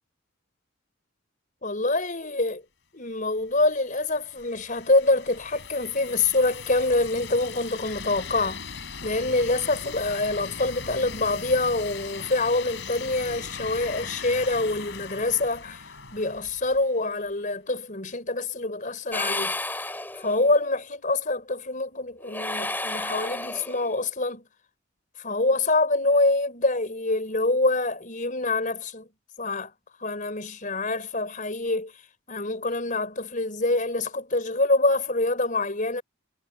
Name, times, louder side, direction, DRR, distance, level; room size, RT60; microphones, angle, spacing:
voice 1, 1.6-2.6 2.9-8.6 9.0-15.8 16.1-19.6 20.1-24.5 25.2-29.1 29.4-29.7 30.0-31.9 32.3-36.0, left 2 dB, 40° left, 5.2 m, -25 dB
sound 1, 3.4-17.2, left 5 dB, 60° left, 5.9 m, -39 dB
sound 2, 19.1-20.6 22.2-24.0, left 2 dB, 10° left, 3.9 m, -32 dB
head